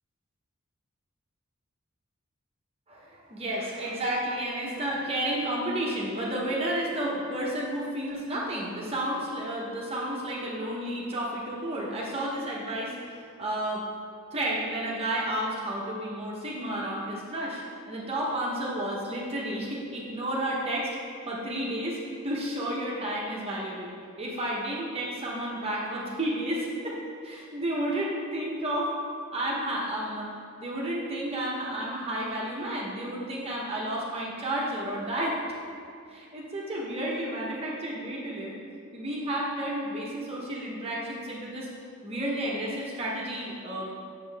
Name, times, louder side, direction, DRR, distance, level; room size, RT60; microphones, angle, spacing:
voice 1, 2.9-13.8 14.3-17.6 17.9-20.9 21.3-27.0 27.2-28.9 29.3-30.3 30.6-35.4 36.1-38.5 38.9-41.7 42.0-43.9, right 1 dB, 30° right, -4 dB, 1.1 m, -31 dB
8.7 x 6.6 x 3.5 m, 2.3 s
head